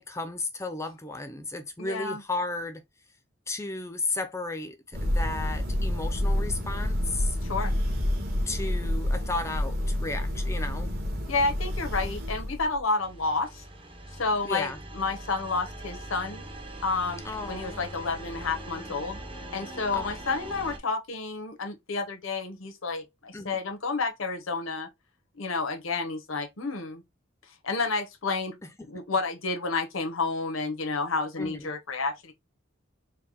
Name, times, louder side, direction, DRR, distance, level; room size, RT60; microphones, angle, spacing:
voice 1, 0.0-2.8 3.5-7.4 8.5-10.9 14.4-14.8 17.2-17.8 19.9-20.1 23.3-23.6 31.4-31.7, left 2 dB, 15° left, 0.5 m, -34 dB
voice 2, 1.8-2.2 7.4-7.7 11.3-13.6 14.2-16.5 16.8-19.2 19.5-24.9 25.4-27.0 27.6-28.6 28.9-32.3, left 3 dB, 90° left, 0.9 m, -30 dB
Thunder, 4.9-12.8, left 1 dB, 50° right, 1.3 m, -28 dB
sound 1, 13.0-20.8, right 1 dB, 25° right, 0.7 m, -42 dB
4.6 x 2.2 x 3.7 m
head